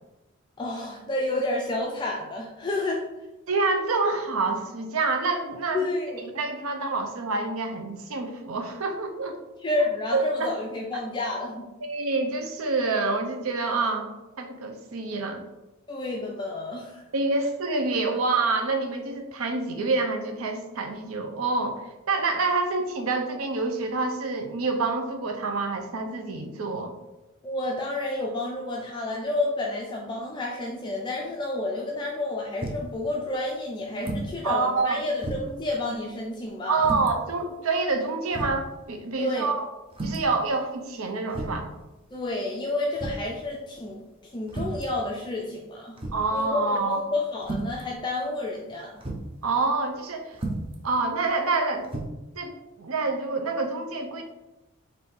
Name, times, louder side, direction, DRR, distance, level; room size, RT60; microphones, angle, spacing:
voice 1, 0.6-3.0 5.7-6.2 9.6-11.7 15.9-17.0 27.4-36.9 39.2-39.5 42.1-46.0 46.3-49.0, left 2 dB, 20° left, -1 dB, 0.4 m, -30 dB
voice 2, 3.5-5.8 6.2-9.4 10.1-10.5 11.8-14.1 14.4-15.4 17.1-21.8 22.1-26.9 34.4-35.0 36.7-39.7 40.0-41.7 46.1-47.0 49.4-50.4 50.8-51.9 52.4-54.2, right 3 dB, 75° right, 4 dB, 0.6 m, -27 dB
sound 1, 32.6-33.0 34.0-34.4 34.7-34.8 35.2-35.6 36.8-37.1 37.9-38.0 38.3-38.6 39.9-40.3 41.3-41.7 43.0-43.3 44.5-44.9 46.0-46.3 47.4-47.8 49.0-49.3 50.3-50.8 51.8-52.0, right 2 dB, 25° right, 0.6 m, -32 dB
3.6 x 2.6 x 4.2 m, 1.0 s
head